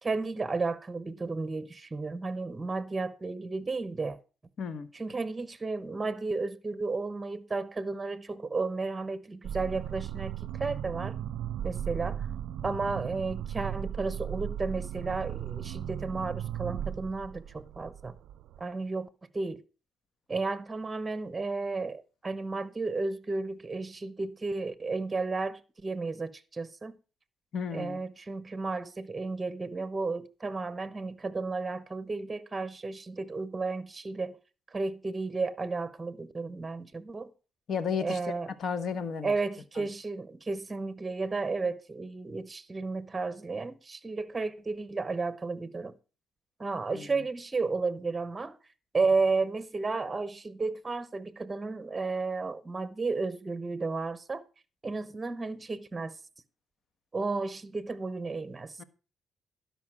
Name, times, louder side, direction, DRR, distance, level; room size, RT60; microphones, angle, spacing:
voice 1, 0.0-4.2 4.9-11.2 11.6-12.3 12.6-18.2 18.6-19.1 19.3-19.6 20.3-27.0 27.7-34.4 34.7-37.3 38.0-38.5 39.2-45.9 46.6-48.6 48.9-54.4 54.8-56.2 57.1-58.8, right 3 dB, 25° right, 0.9 m, -33 dB
voice 2, 4.6-4.9 27.5-28.0 37.7-38.3 38.6-39.3 39.8-39.9 46.9-47.1 58.8-58.9, left 6 dB, 60° left, 1.2 m, -33 dB
sound 1, 9.4-18.6, right 10 dB, 75° right, 0.4 m, -36 dB
12.0 x 5.3 x 6.0 m
cardioid pair, 90°, 0 cm